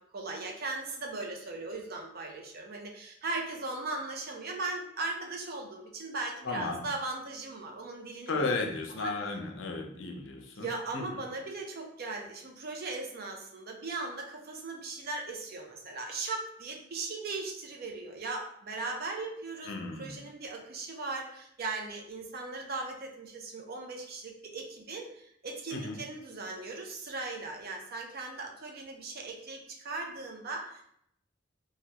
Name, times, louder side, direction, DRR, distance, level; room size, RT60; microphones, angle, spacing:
voice 1, 0.0-9.1 10.6-30.9, right 3 dB, 55° right, 2 dB, 0.6 m, -38 dB
voice 2, 6.4-6.8 8.3-10.7 10.9-11.0 19.7-20.1 25.7-26.0, left 3 dB, 70° left, 3 dB, 0.5 m, -34 dB
3.2 x 2.3 x 2.8 m, 0.69 s
head